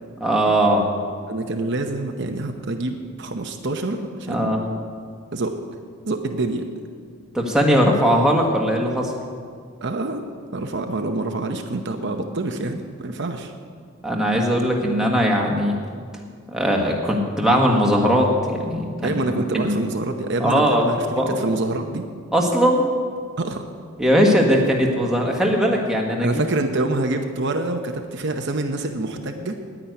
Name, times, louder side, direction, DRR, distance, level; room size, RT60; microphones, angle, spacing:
voice 1, 0.2-0.8 4.3-4.6 7.3-9.1 14.0-15.8 16.5-18.9 19.5-19.8 20.4-20.8 21.1-21.4 22.3-22.9 24.0-26.4, equal, 5° right, -1 dB, 1.5 m, -19 dB
voice 2, 1.3-4.5 5.3-5.6 6.1-6.6 9.8-10.2 10.5-13.5 19.0-22.0 23.4-23.7 26.2-29.5, right 2 dB, 55° right, 4 dB, 0.8 m, -26 dB
10.0 x 9.8 x 9.3 m, 2.1 s
head